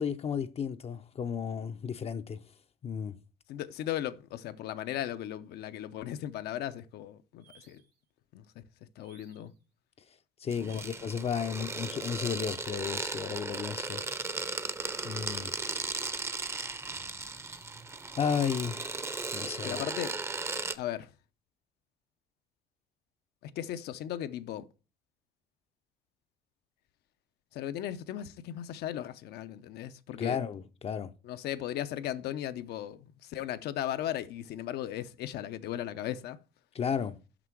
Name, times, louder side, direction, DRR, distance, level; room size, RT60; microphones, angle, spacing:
voice 1, 0.0-2.4 2.8-3.2 10.4-14.0 15.0-15.5 18.2-19.0 19.3-19.8 30.2-31.1 36.7-37.2, left 7 dB, 35° left, 0.5 m, -33 dB
voice 2, 3.5-7.8 8.3-8.6 9.0-9.5 10.7-10.8 19.6-20.2 20.7-21.1 23.4-24.7 27.5-30.4 31.2-36.4, left 11 dB, 75° left, 0.6 m, -37 dB
sound 1, 7.4-8.0 9.0-9.6 10.6-11.1 12.4-13.0 14.1-14.6 15.7-16.3 17.4-17.9, right 7 dB, 75° right, 2.3 m, -61 dB
sound 2, 10.5-20.8, right 3 dB, 15° right, 0.6 m, -36 dB
6.0 x 5.8 x 4.5 m
cardioid pair, 110°, 17 cm